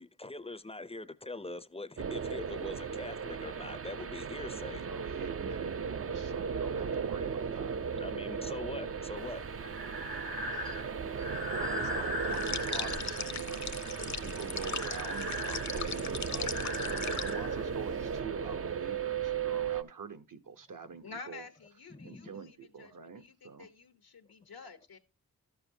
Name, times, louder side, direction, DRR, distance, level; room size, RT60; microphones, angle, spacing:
voice 1, 0.0-4.9 7.8-9.5 21.0-21.1 21.9-22.4, left 2 dB, 15° left, 0.5 m, -43 dB
sound 1, 2.0-19.8, right 6 dB, 40° right, 0.4 m, -36 dB
voice 2, 4.9-7.8 11.2-21.5 22.0-23.7, right 6 dB, 60° right, 0.9 m, -45 dB
Breathing, 9.2-18.2, left 1 dB, 80° right, 1.6 m, -40 dB
sound 2, 12.3-17.3, left 5 dB, 50° left, 0.7 m, -39 dB
voice 3, 21.0-25.0, left 4 dB, 85° left, 1.0 m, -50 dB
12.5 x 6.7 x 2.7 m
cardioid pair, 45°, 36 cm